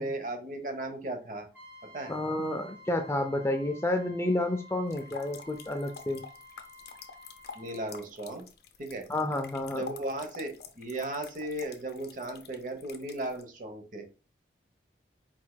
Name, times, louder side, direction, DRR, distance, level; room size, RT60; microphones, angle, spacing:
voice 1, 0.0-1.5 1.9-2.1 7.5-8.4 8.8-9.1 9.7-14.0, right 1 dB, 45° right, 5 dB, 0.9 m, -36 dB
Trumpet, 1.5-7.9, left 1 dB, 10° right, 1.7 m, -51 dB
voice 2, 2.1-6.2 9.1-9.9, left 1 dB, 15° left, 6 dB, 0.4 m, -30 dB
sound 1, 4.9-13.4, left 6 dB, 60° left, 0.6 m, -48 dB
4.5 x 4.4 x 2.2 m, 0.33 s
head